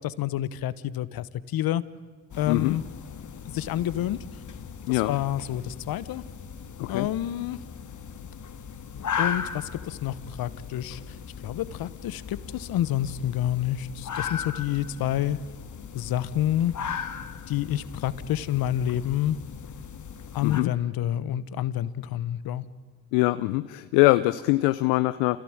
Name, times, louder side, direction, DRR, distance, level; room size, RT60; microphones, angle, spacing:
voice 1, 0.0-1.8 2.4-2.8 3.5-4.2 4.9-6.2 6.9-7.6 9.2-11.2 11.4-15.4 15.9-16.7 17.5-19.4 20.3-22.6, left 12 dB, 65° left, 17 dB, 1.2 m, -28 dB
sound 1, 2.3-20.6, left 7 dB, 50° left, 1.8 m, -38 dB
voice 2, 20.4-20.7 23.1-25.4, left 20 dB, 85° left, 14 dB, 0.7 m, -23 dB
28.0 x 16.5 x 8.9 m, 1.5 s
hypercardioid pair, 50°, 38 cm